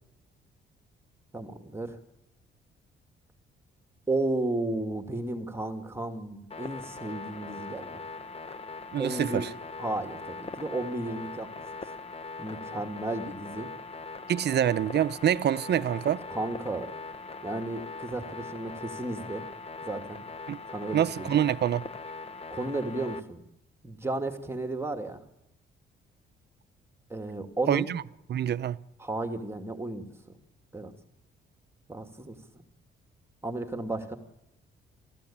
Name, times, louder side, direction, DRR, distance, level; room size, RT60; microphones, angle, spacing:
voice 1, 1.3-2.0 4.1-8.0 9.0-9.5 9.8-11.5 12.4-13.7 16.3-16.9 17.4-19.4 19.8-20.2 20.7-21.4 22.5-23.4 23.8-25.2 27.1-27.9 29.0-30.1 30.7-30.9 31.9-32.6 33.4-34.2, right 2 dB, 10° right, 2.4 m, -33 dB
sound 1, 6.5-23.2, left 4 dB, 30° left, 1.1 m, -41 dB
voice 2, 8.9-9.5 14.3-16.2 20.5-20.6 20.9-21.8 27.7-28.0 28.3-28.8, right 10 dB, 55° right, 0.8 m, -26 dB
30.0 x 14.0 x 8.8 m
cardioid pair, 90°, 20 cm